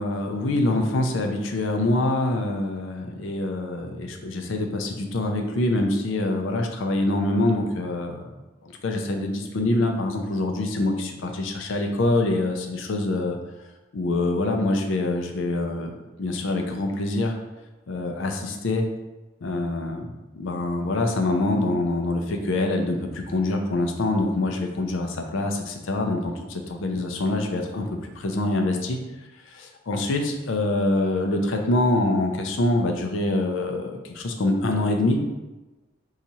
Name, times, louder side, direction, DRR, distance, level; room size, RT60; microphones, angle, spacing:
voice 1, 0.0-8.3 8.6-13.4 13.9-15.9 16.2-17.3 17.9-18.8 19.4-20.1 20.3-29.0 29.5-35.2, left 2 dB, 70° left, 3 dB, 0.5 m, -25 dB
2.8 x 2.4 x 4.1 m, 1.1 s
head